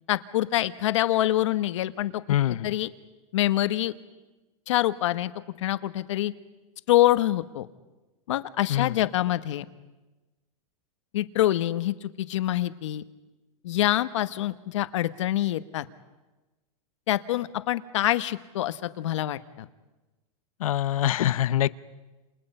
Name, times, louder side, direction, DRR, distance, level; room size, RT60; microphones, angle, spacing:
voice 1, 0.1-2.9 3.3-3.9 4.7-5.3 5.6-6.3 6.9-7.7 8.3-9.6 11.1-13.0 13.6-15.8 17.1-19.7, left 14 dB, 55° left, 11 dB, 1.2 m, -25 dB
voice 2, 2.3-2.7 8.7-8.9 20.6-21.7, left 12 dB, 75° left, 15 dB, 0.8 m, -24 dB
29.5 x 28.5 x 5.6 m, 1.1 s
supercardioid pair, 175°, 18 cm